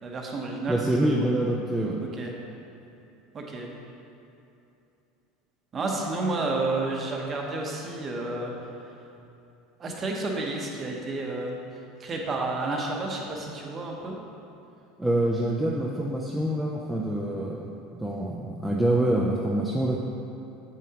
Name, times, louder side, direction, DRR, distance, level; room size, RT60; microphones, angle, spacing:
voice 1, 0.0-1.3 2.2-2.3 3.3-3.7 5.7-8.5 9.8-11.5 12.0-14.2, right 2 dB, 20° right, 0 dB, 0.7 m, -31 dB
voice 2, 0.7-2.0 15.0-20.0, right 1 dB, ahead, -4 dB, 0.3 m, -26 dB
7.3 x 7.3 x 2.8 m, 2.7 s
cardioid pair, 170°, 0 cm